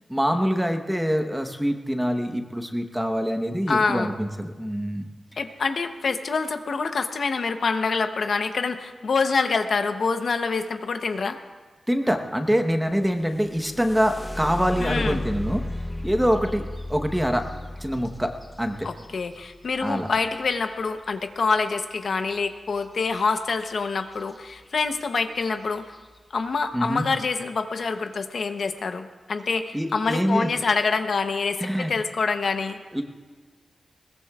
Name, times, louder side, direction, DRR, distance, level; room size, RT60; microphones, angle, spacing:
voice 1, 0.1-5.1 11.9-15.6 16.0-17.5 17.8-18.9 19.8-20.1 26.7-27.0 29.7-30.5 31.6-31.9 32.9-33.0, equal, 5° right, 5 dB, 1.0 m, -25 dB
voice 2, 3.7-4.1 5.4-11.4 14.8-15.3 18.8-26.0 26.3-32.8, left 4 dB, 60° left, 7 dB, 0.8 m, -26 dB
sound 1, 13.2-21.0 23.1-23.2 23.6-24.2 24.8-24.9 25.4-25.8, left 1 dB, 10° left, 0.7 m, -35 dB
21.0 x 19.5 x 2.4 m, 1.4 s
wide cardioid pair, 135°, 0 cm